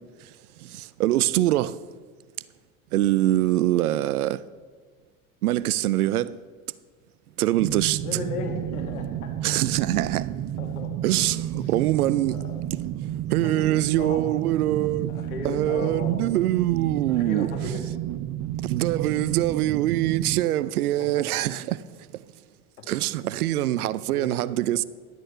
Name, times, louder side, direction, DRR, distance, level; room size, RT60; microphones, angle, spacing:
voice 1, 0.6-1.8 2.9-4.4 5.4-6.4 7.4-8.0 9.4-10.3 11.0-12.4 12.7-12.8 13.3-15.1 15.4-17.5 18.6-21.8 22.1-22.2 22.9-24.8, right 14 dB, 85° right, 0.6 m, -24 dB
sound 1, 7.6-20.4, right 12 dB, 45° right, 0.7 m, -31 dB
voice 2, 8.0-9.6 10.6-11.0 11.5-11.7 12.3-12.6 13.4-14.2 15.1-16.3 17.1-17.9 21.0-21.5 24.1-24.8, left 5 dB, 80° left, 2.3 m, -36 dB
12.0 x 8.8 x 5.6 m
hypercardioid pair, 80°, 43 cm